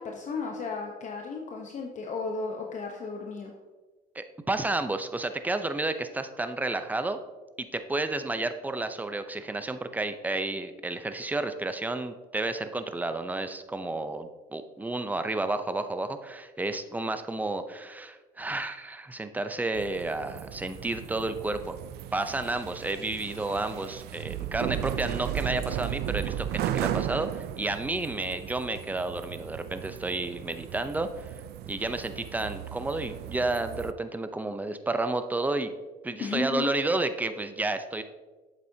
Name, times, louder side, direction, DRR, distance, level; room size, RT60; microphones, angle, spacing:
voice 1, 0.0-3.5 36.2-36.7, left 4 dB, 45° left, 1 dB, 0.9 m, -34 dB
voice 2, 4.1-7.2 7.6-21.8 22.1-31.3 31.7-35.7 36.0-38.0, right 2 dB, 10° right, 9 dB, 0.5 m, -31 dB
sound 1, 19.7-33.9, right 12 dB, 75° right, 0.4 m, -36 dB
8.3 x 7.3 x 2.7 m, 1.3 s
cardioid pair, 110°, 17 cm